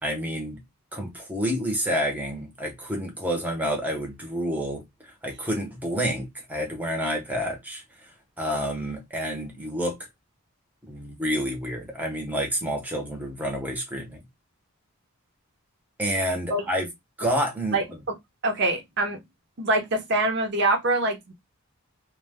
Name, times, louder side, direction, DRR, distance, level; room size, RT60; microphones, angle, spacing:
voice 1, 0.0-0.6 0.9-7.8 8.4-10.0 10.8-14.2 16.0-16.9 17.2-17.8, equal, 10° right, 0.7 m, -29 dB
voice 2, 18.4-19.2 19.6-21.3, right 2 dB, 50° right, 0.7 m, -24 dB
2.2 x 2.1 x 3.3 m
head